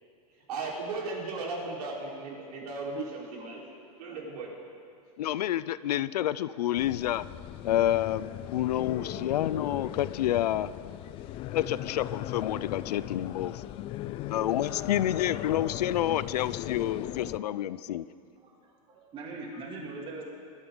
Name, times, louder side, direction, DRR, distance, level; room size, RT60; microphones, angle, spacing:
voice 1, 0.3-3.7 4.0-4.5, right 3 dB, 75° right, -3 dB, 4.2 m, -36 dB
voice 2, 5.2-7.2 7.6-10.7 11.5-13.6 14.3-18.0, left 12 dB, 90° left, 17 dB, 0.5 m, -29 dB
sound 1, 6.8-17.4, left 13 dB, 30° left, 0.3 m, -38 dB
voice 3, 18.4-20.2, right 3 dB, 25° right, -1 dB, 2.6 m, -41 dB
20.5 x 12.5 x 3.9 m, 2.4 s
supercardioid pair, 140°, 20 cm